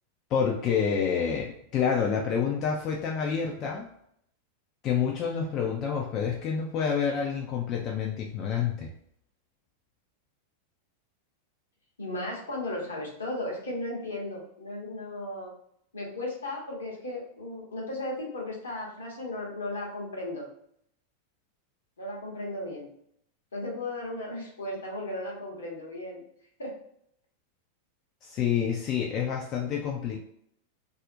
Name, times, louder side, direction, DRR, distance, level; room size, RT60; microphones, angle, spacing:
voice 1, 0.3-3.9 4.8-8.9 28.2-30.2, left 7 dB, 35° left, 0 dB, 0.3 m, -28 dB
voice 2, 12.0-15.5 15.9-20.5 22.0-22.9 23.5-26.2 26.6-26.7, left 1 dB, 70° left, -2 dB, 0.8 m, -35 dB
2.4 x 2.0 x 2.6 m, 0.70 s
figure-of-eight pair, 90°, 0 cm